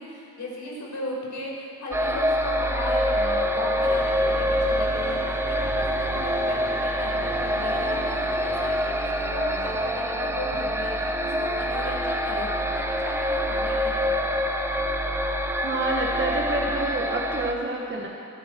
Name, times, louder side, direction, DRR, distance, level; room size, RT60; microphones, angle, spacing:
voice 1, 0.0-14.0, left 2 dB, 60° left, -4 dB, 4.6 m, -35 dB
sound 1, 1.9-17.5, equal, 10° right, 0.8 m, -26 dB
sound 2, 3.8-10.4, left 2 dB, 80° left, 3.6 m, -41 dB
voice 2, 15.6-18.1, right 2 dB, 35° right, -1 dB, 1.4 m, -28 dB
22.0 x 12.0 x 4.5 m, 2.4 s
wide cardioid pair, 145°, 33 cm